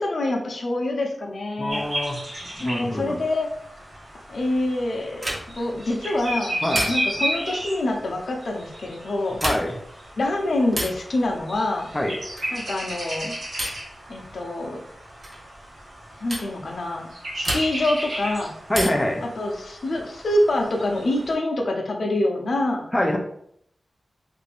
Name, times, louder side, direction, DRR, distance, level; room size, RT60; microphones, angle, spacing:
voice 1, 0.0-1.8 2.6-3.5 4.3-6.5 6.9-9.4 10.2-11.9 12.5-13.4 14.1-14.8 16.2-17.1 17.3-18.5 19.4-22.9, left 1 dB, 65° left, 1 dB, 0.6 m, -26 dB
voice 2, 1.6-2.2 2.6-3.2 6.6-6.9 9.4-9.8 11.9-12.2 17.5-17.6 18.7-19.2 22.9-23.2, left 1 dB, 15° left, 1 dB, 0.4 m, -25 dB
sound 1, 1.7-21.3, right 1 dB, 85° right, 1.2 m, -34 dB
sound 2, 5.2-5.7 6.7-7.3 9.3-9.9 10.7-11.1 12.3-12.7 13.6-13.9 15.2-15.4 16.3-16.5 17.4-18.0 18.7-19.2 20.7-21.3, right 1 dB, 25° right, 1.0 m, -31 dB
3.3 x 2.6 x 3.3 m, 0.69 s
wide cardioid pair, 125°, 0 cm